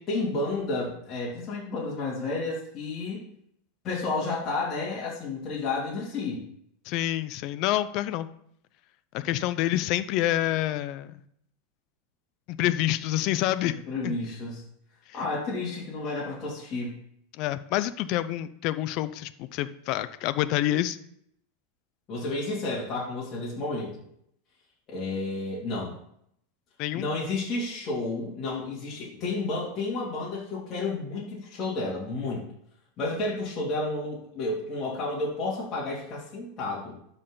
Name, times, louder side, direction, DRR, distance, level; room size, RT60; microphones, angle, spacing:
voice 1, 0.0-3.3 3.8-6.5 9.2-9.3 13.6-14.6 15.1-17.0 22.1-23.9 24.9-26.0 26.9-32.4 33.0-36.9, left 2 dB, 35° left, -6 dB, 3.0 m, -31 dB
voice 2, 6.9-8.3 9.1-11.2 12.5-13.7 14.0-14.2 17.4-21.0 26.8-27.1, left 14 dB, 55° left, 15 dB, 0.5 m, -27 dB
12.0 x 4.4 x 3.9 m, 0.70 s
hypercardioid pair, 110°, 0 cm